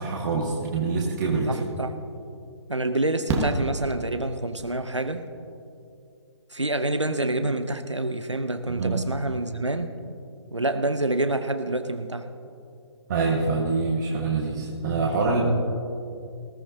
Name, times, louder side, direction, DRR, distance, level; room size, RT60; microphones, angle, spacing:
voice 1, 0.0-1.6 8.6-9.0 13.1-15.4, right 4 dB, 40° right, -1 dB, 1.5 m, -25 dB
voice 2, 1.5-1.9 2.7-5.2 6.5-9.9 10.5-12.3, right 2 dB, 90° right, 9 dB, 0.8 m, -27 dB
Fireworks, 3.3-4.6 6.4-6.5 6.7-6.8, right 3 dB, 20° right, 1.4 m, -28 dB
19.0 x 15.0 x 2.7 m, 2.5 s
figure-of-eight pair, 130°, 15 cm